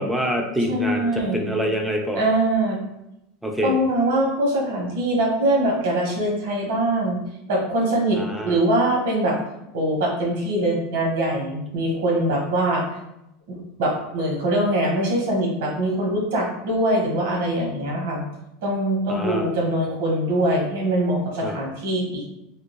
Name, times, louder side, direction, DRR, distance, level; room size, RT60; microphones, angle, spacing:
voice 1, 0.0-1.1 1.3-2.2 3.4-3.7 8.1-8.6 19.1-19.5 21.4-21.6, equal, 5° right, 2 dB, 0.4 m, -26 dB
voice 2, 0.7-1.5 2.1-2.8 3.6-7.2 7.5-8.2 8.4-9.4 9.7-12.8 13.5-18.2 18.6-22.2, right 1 dB, 75° right, -1 dB, 1.1 m, -23 dB
3.5 x 2.3 x 3.0 m, 0.87 s
supercardioid pair, 150°, 0 cm